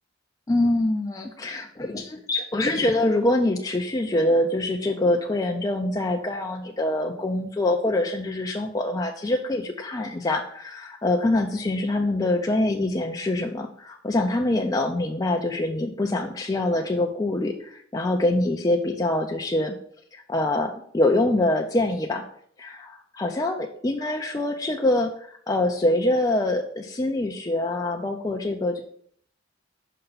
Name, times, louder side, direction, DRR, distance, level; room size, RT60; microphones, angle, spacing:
voice 1, 0.5-19.8 20.1-22.2 22.6-28.8, left 1 dB, 20° left, 2 dB, 0.4 m, -25 dB
5.5 x 5.5 x 4.0 m, 0.62 s
head